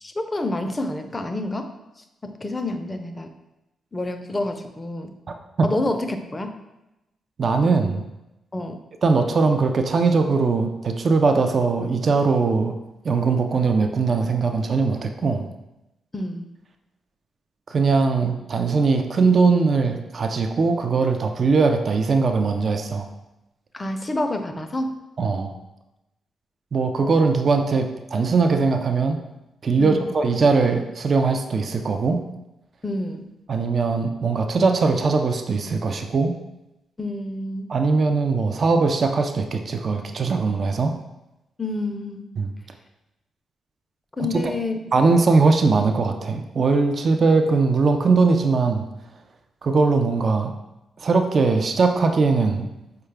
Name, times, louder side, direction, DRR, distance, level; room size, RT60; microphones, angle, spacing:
voice 1, 0.0-1.7 2.2-3.3 3.9-5.1 5.6-6.6 8.5-8.8 16.1-16.4 23.7-25.0 29.8-30.1 32.8-33.3 37.0-37.7 41.6-42.3 44.2-44.8, left 2 dB, 30° left, 7 dB, 0.5 m, -28 dB
voice 2, 5.3-5.7 7.4-8.1 9.0-12.7 13.0-15.5 17.7-23.1 25.2-25.5 26.7-29.2 29.6-32.2 33.5-36.4 37.7-40.9 42.4-42.5 44.4-44.5 44.9-48.9 49.6-50.5 51.0-52.7, right 4 dB, 55° right, 5 dB, 0.4 m, -20 dB
4.7 x 2.2 x 3.3 m, 0.94 s
hypercardioid pair, 40°, 0 cm